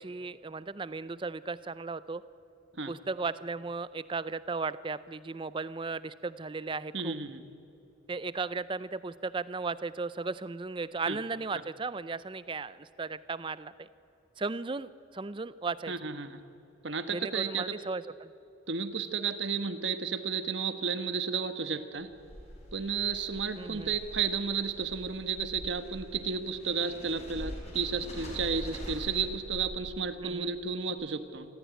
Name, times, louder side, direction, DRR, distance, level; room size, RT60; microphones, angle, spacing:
voice 1, 0.0-2.2 2.9-7.2 8.1-13.9 14.4-15.9 17.1-18.3 23.6-23.9 30.2-30.5, right 4 dB, 25° right, 16 dB, 0.5 m, -36 dB
voice 2, 6.9-7.4 11.1-11.2 15.9-16.4 16.8-17.6 18.7-22.1 22.7-31.5, right 5 dB, 70° right, 9 dB, 1.3 m, -32 dB
sound 1, 22.0-30.3, equal, 35° left, 6.0 m, -44 dB
26.0 x 14.5 x 9.3 m, 2.9 s
head